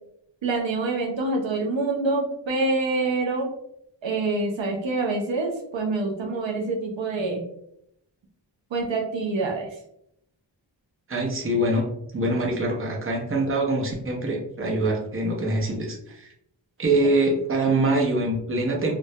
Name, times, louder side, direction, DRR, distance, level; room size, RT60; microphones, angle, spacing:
voice 1, 0.4-3.5 4.0-7.5 8.7-9.8, right 3 dB, 75° right, 1 dB, 0.6 m, -26 dB
voice 2, 11.1-11.8 12.1-16.3 16.8-18.9, right 2 dB, 30° right, -1 dB, 0.6 m, -24 dB
2.2 x 2.1 x 2.7 m, 0.75 s
wide cardioid pair, 55°, 46 cm